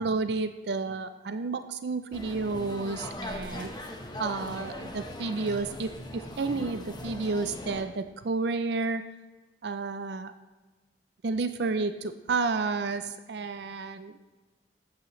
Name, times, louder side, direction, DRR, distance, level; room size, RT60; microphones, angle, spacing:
voice 1, 0.0-3.7 4.2-9.0 9.6-10.3 11.2-14.2, right 3 dB, 65° right, 11 dB, 0.5 m, -31 dB
sound 1, 2.1-7.8, left 1 dB, 25° left, 1.1 m, -40 dB
15.0 x 8.4 x 3.1 m, 1.2 s
head